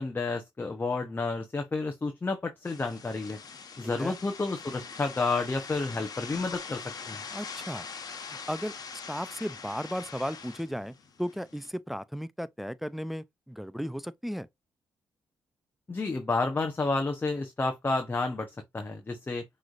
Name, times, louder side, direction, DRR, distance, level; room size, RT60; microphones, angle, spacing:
voice 1, 0.0-3.4 3.8-6.8 7.1-7.2 15.9-19.4, left 3 dB, 25° left, 0.8 m, -30 dB
sound 1, 2.6-11.7, left 5 dB, 55° left, 1.2 m, -43 dB
voice 2, 7.3-7.9 8.3-8.7 9.1-10.9 11.2-14.5, equal, ahead, 0.4 m, -35 dB
6.1 x 3.2 x 2.5 m
cardioid pair, 75°, 8 cm